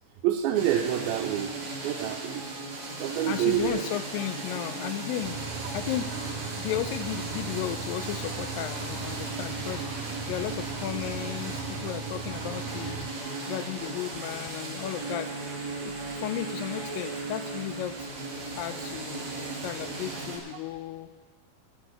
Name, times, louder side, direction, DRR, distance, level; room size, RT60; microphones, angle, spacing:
voice 1, 0.2-1.6 1.8-2.4 2.9-3.8, right 11 dB, 90° right, 3 dB, 2.5 m, -27 dB
sound 1, 0.5-20.4, right 3 dB, 50° right, 3.2 m, -37 dB
sound 2, 2.0-16.9, left 3 dB, 65° left, 3.3 m, -51 dB
voice 2, 3.3-5.4 5.7-6.1 6.5-9.9 10.3-13.0 13.5-15.3 15.8-18.1 18.6-21.1, left 12 dB, 80° left, 11 dB, 2.2 m, -34 dB
sound 3, 5.2-13.1, right 4 dB, 70° right, 3.5 m, -38 dB
14.0 x 6.3 x 8.1 m, 1.3 s
omnidirectional pair, 4.2 m